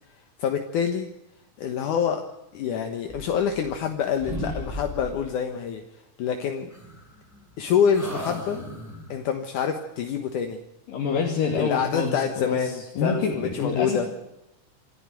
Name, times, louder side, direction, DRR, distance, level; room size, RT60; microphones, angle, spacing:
voice 1, 0.4-1.1 1.6-2.2 2.5-5.8 6.2-6.7 7.6-8.7 9.1-10.6 11.5-14.1, left 7 dB, 70° left, 5 dB, 2.7 m, -26 dB
sound 1, 3.1-3.9 4.2-5.4 6.7-7.6 7.9-9.2, equal, 5° right, 7.0 m, -36 dB
voice 2, 10.9-14.1, left 5 dB, 90° left, -1 dB, 4.3 m, -27 dB
27.0 x 12.0 x 9.1 m, 0.91 s
omnidirectional pair, 3.8 m